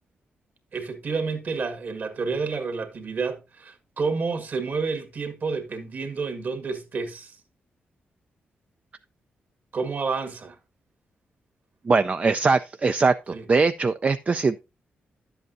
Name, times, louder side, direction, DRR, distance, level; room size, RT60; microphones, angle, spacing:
voice 1, 0.7-7.4 9.7-10.6 13.3-13.4, right 4 dB, 55° right, 1.8 m, -29 dB
voice 2, 11.9-14.6, right 4 dB, 35° right, 0.4 m, -22 dB
11.0 x 7.8 x 2.6 m
cardioid pair, 80°, 4 cm